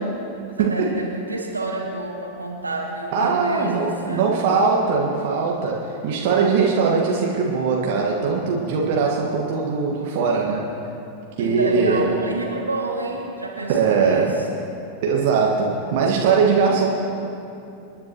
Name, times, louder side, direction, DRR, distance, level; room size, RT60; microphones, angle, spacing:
voice 1, 0.6-4.3 11.3-14.3, right 2 dB, 80° right, -2 dB, 2.3 m, -29 dB
voice 2, 3.1-10.7 11.4-12.1 13.7-14.4 15.0-16.9, right 5 dB, 50° right, -2 dB, 1.5 m, -20 dB
27.5 x 10.5 x 3.0 m, 2.8 s
figure-of-eight pair, 90°, 0 cm